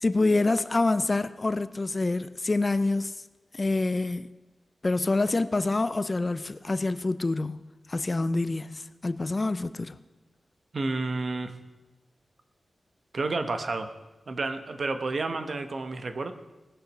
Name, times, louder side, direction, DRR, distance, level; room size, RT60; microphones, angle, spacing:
voice 1, 0.0-3.2 3.5-4.3 4.8-7.6 7.9-10.0, left 2 dB, 25° left, 0.4 m, -26 dB
voice 2, 10.7-11.6 13.1-13.9 14.3-16.3, right 3 dB, 45° right, 0.9 m, -30 dB
19.0 x 6.5 x 6.4 m
wide cardioid pair, 160°, 0 cm